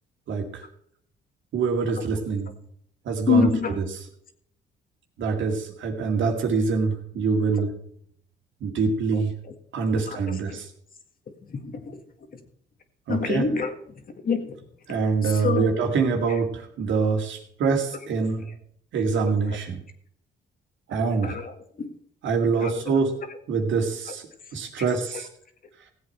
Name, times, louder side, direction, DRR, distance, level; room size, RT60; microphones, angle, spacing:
voice 1, 0.3-0.6 1.5-2.5 3.1-3.5 5.2-7.7 8.6-9.3 9.7-10.7 13.1-13.5 14.9-18.4 18.9-19.8 20.9-21.4 22.2-23.1 23.5-24.3 24.5-25.3, right 5 dB, 75° right, 2.2 m, -25 dB
voice 2, 3.3-3.8 9.1-9.5 10.1-10.6 11.5-12.0 12.3-12.4 13.1-14.6 15.2-15.9 16.3-16.4 18.4-18.5 19.3-19.6 21.2-21.9 22.6-22.8 24.8-24.9 25.1-25.2, left 5 dB, 45° left, 1.8 m, -28 dB
16.5 x 8.0 x 4.3 m
cardioid pair, 90°, 20 cm